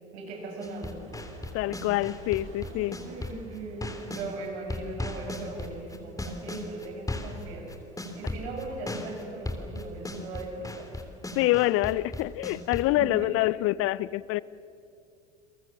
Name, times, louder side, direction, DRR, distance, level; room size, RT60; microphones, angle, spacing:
voice 1, 0.1-1.0 2.7-7.7 8.1-10.9 13.0-13.5, right 2 dB, 65° right, 1 dB, 7.4 m, -39 dB
sound 1, 0.6-4.3 4.7-12.9, left 2 dB, 10° left, 3.3 m, -36 dB
sound 2, 0.6-11.8 12.1-13.2 13.7-13.8, right 2 dB, 35° right, 8.0 m, -54 dB
voice 2, 1.5-3.0 11.3-14.4, left 17 dB, 40° left, 21 dB, 0.6 m, -26 dB
29.5 x 22.5 x 7.5 m, 2.6 s
figure-of-eight pair, 75°, 35 cm